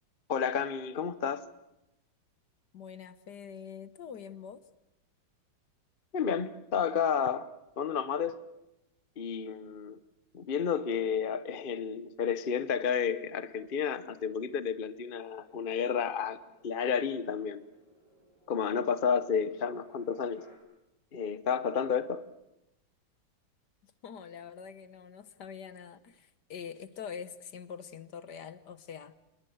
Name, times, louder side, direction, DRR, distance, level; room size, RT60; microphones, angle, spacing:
voice 1, 0.3-1.4 6.1-7.5 7.8-8.4 9.2-10.0 10.3-16.4 16.6-17.6 18.5-20.4 21.1-22.2, left 7 dB, 40° left, 13 dB, 0.8 m, -31 dB
voice 2, 2.7-4.6 23.8-29.1, left 7 dB, 60° left, 13 dB, 1.5 m, -45 dB
sound 1, 15.4-20.6, right 1 dB, 55° right, 7.3 m, -60 dB
27.0 x 20.5 x 7.9 m, 0.90 s
omnidirectional pair, 2.3 m